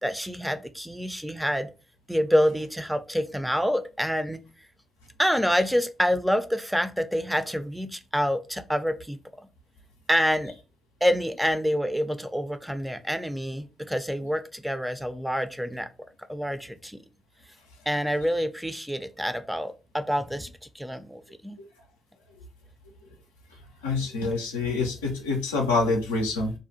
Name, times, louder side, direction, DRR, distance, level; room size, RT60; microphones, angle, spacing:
voice 1, 0.0-1.7 2.1-4.4 5.2-9.2 10.1-10.6 11.0-15.9 16.3-17.0 17.9-20.5 20.7-21.6, equal, 5° right, 10 dB, 0.4 m, -27 dB
voice 2, 23.8-26.5, left 3 dB, 90° left, 0 dB, 0.4 m, -26 dB
2.5 x 2.1 x 2.7 m, 0.31 s
hypercardioid pair, 40°, 0 cm